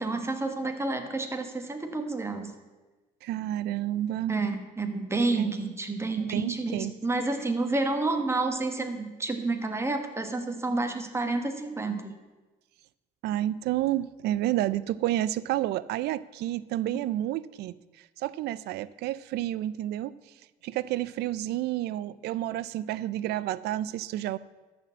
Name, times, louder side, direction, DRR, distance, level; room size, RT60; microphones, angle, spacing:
voice 1, 0.0-2.5 4.3-12.1, right 3 dB, 15° right, 6 dB, 1.2 m, -29 dB
voice 2, 3.2-4.3 5.4-5.5 6.3-6.9 13.2-17.8 18.2-20.1 20.6-24.4, right 14 dB, 75° right, 18 dB, 0.4 m, -30 dB
13.0 x 4.4 x 7.3 m, 1.2 s
cardioid pair, 110°, 17 cm